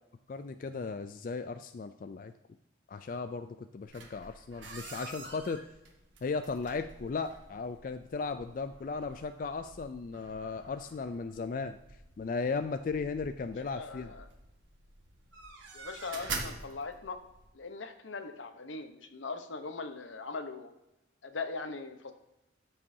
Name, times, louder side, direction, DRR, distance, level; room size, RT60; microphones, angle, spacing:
voice 1, 0.3-2.3 2.9-5.6 6.2-11.8 12.2-14.1, left 4 dB, 45° left, 9 dB, 0.3 m, -36 dB
sound 1, 3.9-17.5, right 3 dB, 80° right, 1.4 m, -47 dB
voice 2, 13.7-14.2 15.7-17.2 17.5-20.7 21.2-22.1, left 4 dB, 85° left, 7 dB, 0.9 m, -40 dB
14.0 x 5.4 x 2.7 m, 0.93 s
head